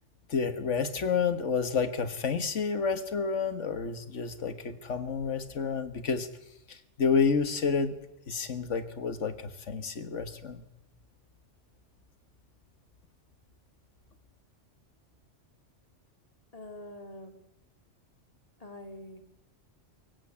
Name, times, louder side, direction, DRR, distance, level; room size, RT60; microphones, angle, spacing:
voice 1, 0.3-6.3 6.7-7.9 8.3-10.7, left 5 dB, 75° left, 10 dB, 1.8 m, -30 dB
voice 2, 16.5-17.4 18.6-19.2, left 1 dB, 30° left, 6 dB, 2.4 m, -45 dB
23.5 x 15.0 x 8.6 m, 0.87 s
omnidirectional pair, 1.3 m